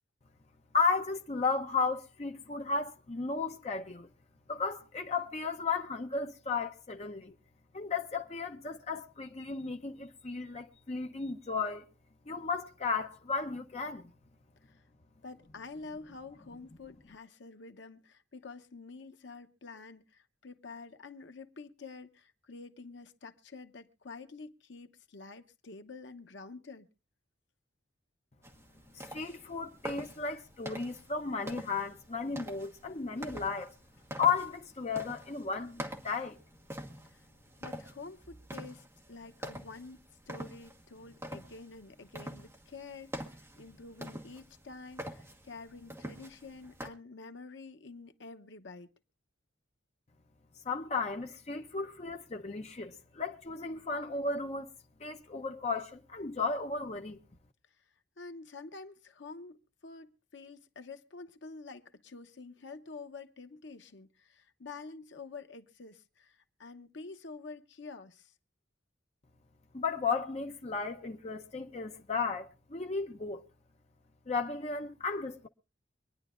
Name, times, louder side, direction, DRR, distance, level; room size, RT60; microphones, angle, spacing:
voice 1, 0.7-4.1 4.5-7.3 7.7-11.9 12.3-14.1 28.9-33.7 34.2-36.4 50.6-54.7 55.0-57.2 69.7-73.4 74.3-75.5, left 4 dB, 35° left, 0.7 m, -34 dB
voice 2, 15.2-26.9 37.1-37.2 37.6-48.9 58.2-68.3, left 3 dB, 65° left, 0.9 m, -48 dB
sound 1, 28.4-46.9, equal, 15° right, 1.3 m, -46 dB
25.5 x 10.0 x 2.5 m
head